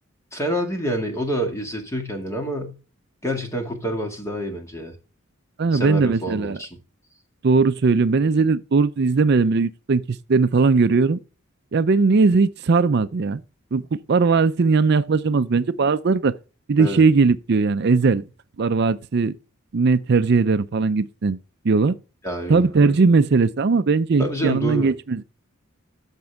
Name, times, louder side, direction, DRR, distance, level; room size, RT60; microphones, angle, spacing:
voice 1, 0.3-2.8 3.2-4.9 5.7-6.7 16.8-17.0 22.2-22.9 24.2-24.9, equal, 15° left, 2.0 m, -27 dB
voice 2, 5.6-6.6 7.4-11.2 11.7-13.4 13.7-16.3 16.7-18.2 18.6-19.4 19.7-21.4 21.6-22.0 22.5-25.2, right 4 dB, 50° right, 0.4 m, -19 dB
13.5 x 5.2 x 3.5 m
head